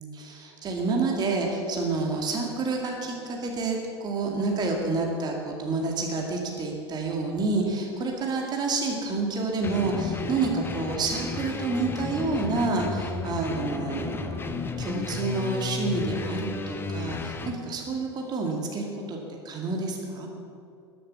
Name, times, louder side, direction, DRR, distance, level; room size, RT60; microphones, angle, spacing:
voice 1, 0.0-14.5 14.8-20.3, right 3 dB, 30° right, 1 dB, 2.2 m, -29 dB
sound 1, 9.6-17.6, left 4 dB, 15° left, 0.9 m, -33 dB
13.5 x 10.0 x 7.0 m, 2.6 s
figure-of-eight pair, 85°, 15 cm